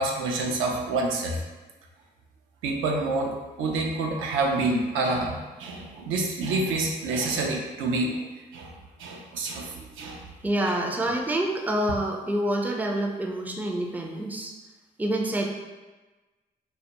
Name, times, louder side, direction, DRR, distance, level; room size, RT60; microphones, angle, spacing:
voice 1, 0.0-1.4 2.6-8.3 8.5-8.7 9.0-10.3 10.7-10.8, right 2 dB, 75° right, 1 dB, 0.4 m, -28 dB
voice 2, 10.4-14.5 15.0-15.5, right 1 dB, 10° right, 0 dB, 0.4 m, -27 dB
2.2 x 2.1 x 2.8 m, 1.2 s
hypercardioid pair, 45°, 21 cm